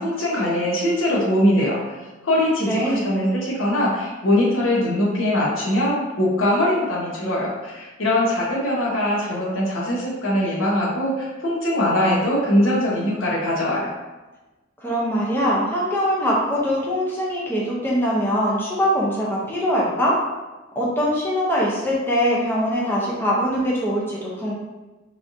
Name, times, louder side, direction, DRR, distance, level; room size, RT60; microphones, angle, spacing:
voice 1, 0.0-2.0 2.2-13.9, left 1 dB, 90° left, -4 dB, 0.9 m, -21 dB
voice 2, 2.6-3.1 14.8-20.2 20.8-24.5, equal, 10° left, -5 dB, 0.6 m, -22 dB
3.3 x 2.6 x 2.6 m, 1.1 s
head